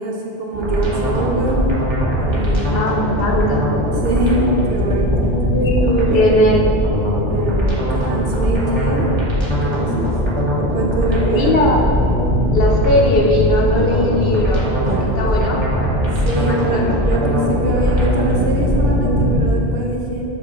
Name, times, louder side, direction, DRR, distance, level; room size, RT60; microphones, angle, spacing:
voice 1, 0.0-1.7 2.2-2.8 4.0-5.2 5.6-6.3 6.8-9.1 9.5-10.1 10.6-11.5 14.8-15.2 15.6-15.7 16.2-20.2, right 2 dB, 75° right, -1 dB, 1.1 m, -23 dB
sound 1, 0.5-19.4, equal, 30° right, 1.1 m, -19 dB
voice 2, 2.7-3.6 5.5-6.6 11.3-11.8 12.5-14.7 15.2-15.6 16.4-16.9, left 1 dB, 65° left, -1 dB, 1.0 m, -18 dB
7.0 x 5.6 x 3.1 m, 2.8 s
omnidirectional pair, 1.0 m